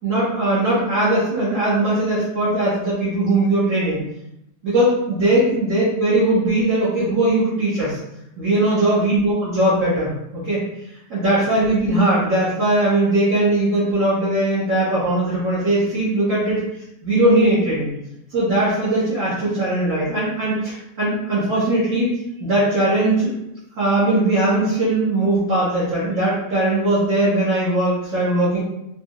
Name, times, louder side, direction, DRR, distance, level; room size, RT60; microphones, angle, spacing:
voice 1, 0.0-4.0 4.6-8.0 8.4-10.6 11.1-16.6 17.0-17.9 18.3-22.1 22.4-23.3 23.8-28.6, right 1 dB, 60° right, -12 dB, 1.8 m, -19 dB
4.6 x 2.6 x 3.0 m, 0.82 s
omnidirectional pair, 1.5 m